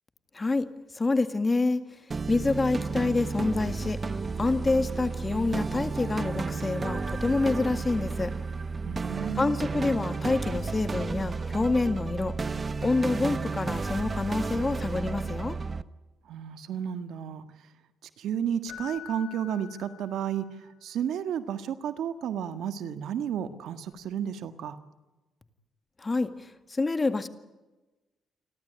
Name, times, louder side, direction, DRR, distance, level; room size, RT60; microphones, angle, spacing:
voice 1, 0.3-0.7 0.9-1.8 2.3-4.0 4.4-8.3 9.4-12.4 12.8-15.6 26.0-27.3, left 3 dB, 25° left, 10 dB, 1.9 m, -27 dB
sound 1, 2.1-15.8, right 4 dB, 30° right, 0.9 m, -32 dB
voice 2, 8.8-9.6 16.2-17.4 18.2-24.8, right 8 dB, 75° right, 10 dB, 1.6 m, -32 dB
Keyboard (musical), 18.7-20.6 23.9-24.0, left 11 dB, 75° left, 1.8 m, -46 dB
29.0 x 12.5 x 9.9 m, 1.1 s
cardioid pair, 90°, 0 cm